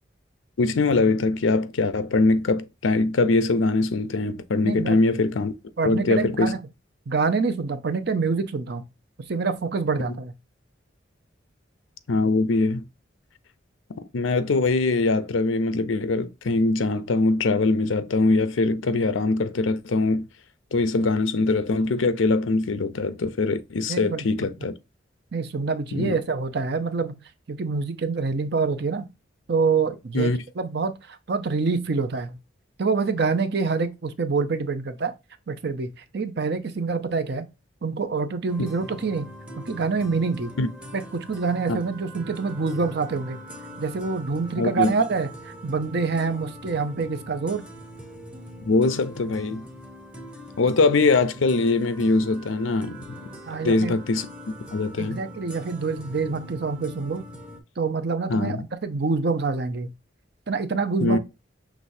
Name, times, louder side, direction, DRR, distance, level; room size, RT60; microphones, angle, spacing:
voice 1, 0.6-5.5 5.8-6.6 12.1-12.8 14.1-20.3 20.7-24.8 25.9-26.2 30.1-30.4 40.6-40.7 41.7-41.8 44.5-44.9 48.6-49.7 50.6-53.0 53.6-54.3 54.7-55.2 58.3-58.6 61.0-61.2, left 3 dB, 90° left, 0.6 m, -22 dB
voice 2, 4.6-5.0 5.8-6.6 7.1-8.8 9.3-10.3 23.9-24.2 25.3-27.1 27.5-29.0 29.5-30.3 30.6-32.4 32.8-35.1 35.5-37.5 37.8-40.5 40.9-43.4 43.8-47.6 53.5-54.0 55.0-57.2 57.8-59.9 60.5-61.2, right 4 dB, 55° right, 0.6 m, -26 dB
sound 1, 38.5-57.6, equal, 5° right, 0.7 m, -42 dB
6.0 x 3.1 x 2.6 m
head